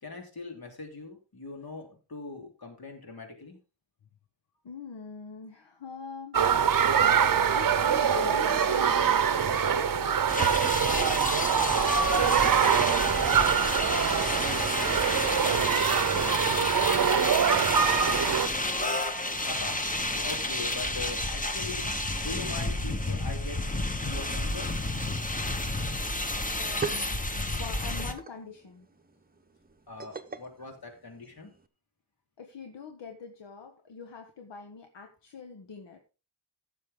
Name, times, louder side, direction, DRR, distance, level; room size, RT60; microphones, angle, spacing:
voice 1, 0.0-3.6 11.6-12.5 13.2-14.1 19.5-21.9 22.2-23.6 24.0-24.7 29.9-31.5, left 3 dB, 55° left, 2 dB, 3.5 m, -41 dB
voice 2, 4.6-6.4 6.8-10.5 15.1-18.6 26.5-28.9 32.4-36.0, left 5 dB, 75° left, 5 dB, 1.5 m, -44 dB
sound 1, 6.3-18.5, right 7 dB, 50° right, 0.8 m, -24 dB
sound 2, 10.3-28.1, left 2 dB, 20° left, 1.1 m, -31 dB
sound 3, 26.6-31.7, right 5 dB, 20° right, 0.9 m, -42 dB
15.0 x 6.9 x 3.7 m, 0.32 s
wide cardioid pair, 150°, 43 cm